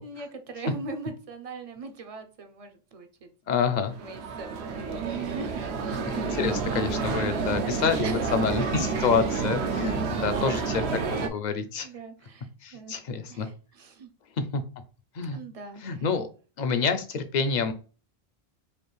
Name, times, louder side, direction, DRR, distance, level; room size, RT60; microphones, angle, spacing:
voice 1, 0.0-3.3 4.0-6.4 8.0-8.2 10.3-10.7 11.8-12.9 13.3-14.1 15.3-16.0, right 4 dB, 45° right, 8 dB, 0.5 m, -40 dB
voice 2, 3.5-3.9 6.1-11.9 12.6-13.5 14.4-14.6 15.2-15.4 15.8-16.3 16.6-17.7, left 5 dB, 55° left, 9 dB, 0.6 m, -28 dB
sound 1, 3.9-11.3, right 5 dB, 80° right, 0.9 m, -29 dB
5.1 x 2.4 x 3.1 m, 0.37 s
omnidirectional pair, 1.1 m